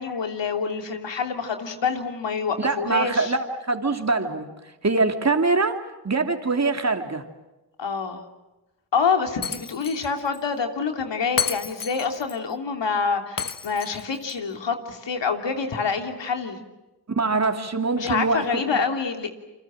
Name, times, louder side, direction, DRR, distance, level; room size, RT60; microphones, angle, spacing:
voice 1, 0.0-3.3 7.8-8.2 8.9-16.6 18.0-19.3, left 5 dB, 75° left, 5 dB, 3.2 m, -27 dB
voice 2, 2.6-4.5 4.8-5.8 6.0-7.2 17.1-18.8, right 3 dB, 35° right, 5 dB, 2.9 m, -23 dB
Shatter, 9.4-10.1 10.3-10.4 11.4-12.4 13.4-14.4, left 6 dB, 50° left, 1.4 m, -30 dB
29.5 x 24.0 x 7.6 m, 1.0 s
cardioid pair, 50°, 43 cm